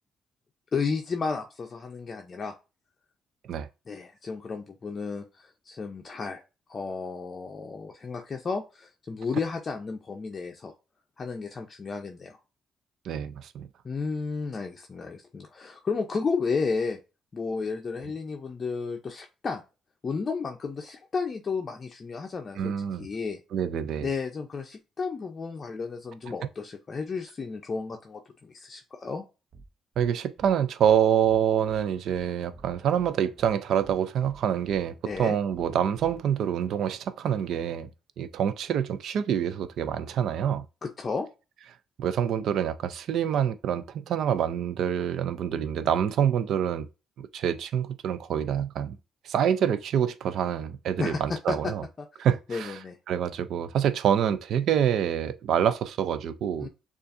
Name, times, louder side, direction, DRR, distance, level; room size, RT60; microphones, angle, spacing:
voice 1, 0.7-2.5 3.9-6.4 6.7-10.7 11.2-12.4 13.8-17.0 17.3-19.6 20.0-23.4 24.0-29.2 35.1-35.4 40.8-41.3 51.0-51.7 52.0-53.0 56.6-56.7, left 4 dB, 40° left, 0.5 m, -33 dB
voice 2, 13.0-13.7 22.6-23.1 23.5-24.1 30.0-37.9 38.2-40.6 42.0-46.9 47.2-49.0 49.2-51.8 52.2-52.8 53.1-56.7, right 9 dB, 75° right, 0.4 m, -26 dB
sound 1, 29.5-29.7 29.9-30.1 30.4-30.5 30.8-30.9 31.2-31.4 31.7-31.8 32.1-32.2 32.5-33.1 33.4-33.5 33.8-33.9 34.2-34.4 34.7-34.8 35.1-35.2 35.5-35.7 35.9-36.2, right 4 dB, 60° right, 0.8 m, -49 dB
6.7 x 2.5 x 2.5 m
cardioid pair, 90°, 0 cm